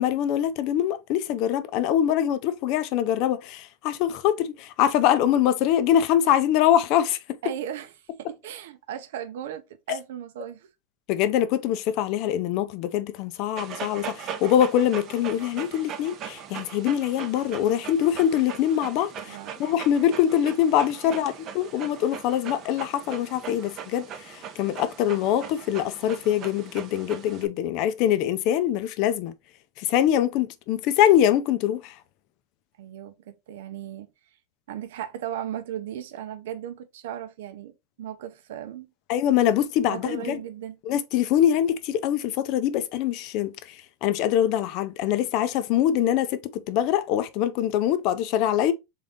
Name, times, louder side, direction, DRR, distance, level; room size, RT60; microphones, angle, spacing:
voice 1, 0.0-7.2 11.1-24.0 24.6-29.3 29.9-31.8 39.1-40.4 40.9-43.5 44.0-48.7, left 10 dB, 40° left, 0.5 m, -23 dB
voice 2, 7.4-7.9 8.2-10.7 19.2-19.5 21.0-21.4 32.8-34.1 34.7-37.7 38.0-38.9 39.9-40.8, right 10 dB, 75° right, 0.7 m, -36 dB
Dog, 13.6-27.5, right 8 dB, 30° right, 0.6 m, -40 dB
3.8 x 3.6 x 3.6 m
supercardioid pair, 165°, 0 cm